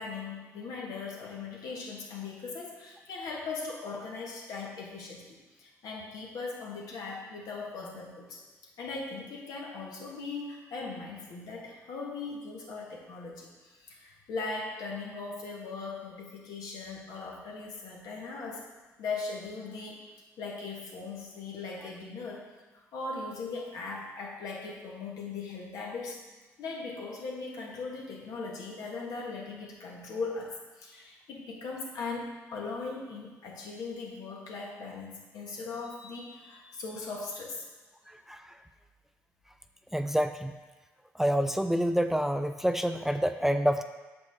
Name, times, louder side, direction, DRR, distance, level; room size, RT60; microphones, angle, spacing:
voice 1, 0.0-5.2 5.6-8.4 8.8-18.6 19.0-20.0 20.4-22.4 22.7-26.2 26.6-37.6, left 4 dB, 70° left, -2 dB, 1.5 m, -39 dB
voice 2, 38.1-38.5 39.9-40.5 41.2-43.8, equal, 5° right, 8 dB, 0.4 m, -27 dB
6.8 x 5.1 x 3.5 m, 1.3 s
supercardioid pair, 60°, 7 cm